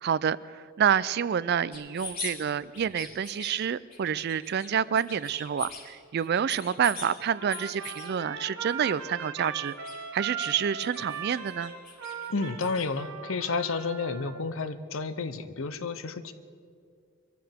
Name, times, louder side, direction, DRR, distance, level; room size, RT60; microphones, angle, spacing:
voice 1, 0.0-9.7 10.1-11.7, right 8 dB, 50° right, 18 dB, 0.3 m, -28 dB
sound 1, 1.7-2.3 2.7-3.5 3.9-4.7 4.9-5.8 6.2-7.1 7.5-8.1 8.6-8.9 9.2-10.5 10.8-12.9, left 4 dB, 45° left, 3.6 m, -42 dB
Trumpet, 7.3-14.4, right 6 dB, 80° right, 1.4 m, -39 dB
voice 2, 12.3-16.3, left 4 dB, 70° left, 12 dB, 0.8 m, -31 dB
23.5 x 14.5 x 3.6 m, 2.2 s
head